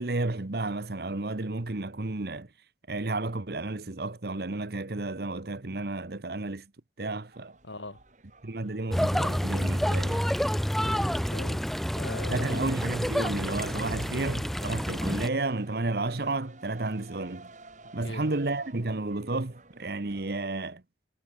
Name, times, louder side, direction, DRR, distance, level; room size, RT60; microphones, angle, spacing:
voice 1, 0.0-2.5 2.9-6.7 7.0-7.5 8.4-10.3 12.3-17.5 17.9-20.8, right 2 dB, 55° right, 1.1 m, -32 dB
sound 1, 7.3-20.5, right 2 dB, 40° right, 3.8 m, -53 dB
voice 2, 7.6-8.0 10.8-11.6 12.0-12.7 18.0-18.3, left 2 dB, 90° left, 4.5 m, -40 dB
sound 2, 8.9-15.3, equal, ahead, 0.4 m, -28 dB
head